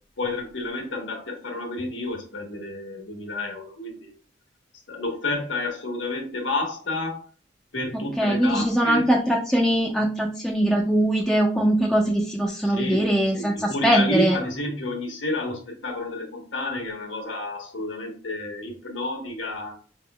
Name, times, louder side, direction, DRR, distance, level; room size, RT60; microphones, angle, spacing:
voice 1, 0.2-4.1 4.9-7.2 7.7-9.1 12.6-13.1 13.3-19.8, left 2 dB, 80° left, 2 dB, 1.2 m, -30 dB
voice 2, 7.9-14.4, right 1 dB, ahead, -2 dB, 0.4 m, -22 dB
4.9 x 3.5 x 2.2 m, 0.40 s
head